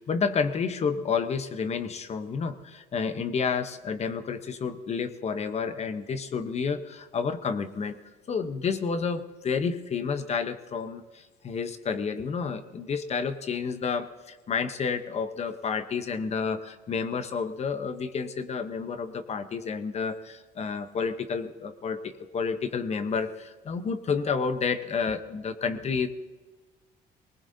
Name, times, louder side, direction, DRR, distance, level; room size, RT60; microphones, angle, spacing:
voice 1, 0.0-7.9 8.3-26.1, left 5 dB, 40° left, 10 dB, 0.9 m, -30 dB
20.0 x 19.0 x 2.7 m, 1.2 s
cardioid pair, 110°, 17 cm